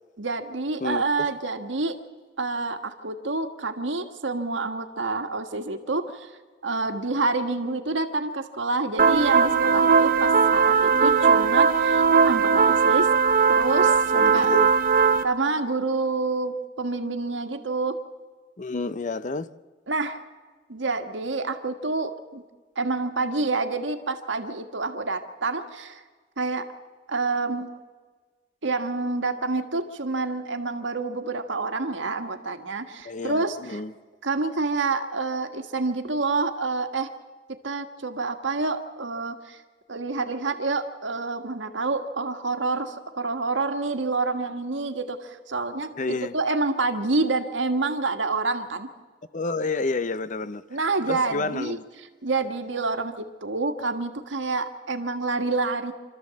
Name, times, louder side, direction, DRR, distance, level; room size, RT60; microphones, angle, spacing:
voice 1, 0.2-1.9 2.4-6.3 6.6-13.1 13.5-14.5 15.2-18.0 19.9-20.2 20.7-22.4 22.7-26.0 26.4-26.7 27.1-27.7 28.6-33.8 34.2-37.1 37.5-39.6 39.9-48.9 50.7-51.8 52.2-55.9, right 3 dB, 75° right, 1.5 m, -28 dB
sound 1, 9.0-15.2, right 5 dB, 45° right, 0.8 m, -19 dB
voice 2, 14.1-14.7 18.6-19.5 33.0-33.9 46.0-46.3 49.3-50.6 51.1-51.8, left 3 dB, 40° left, 0.6 m, -29 dB
26.5 x 13.0 x 7.6 m
head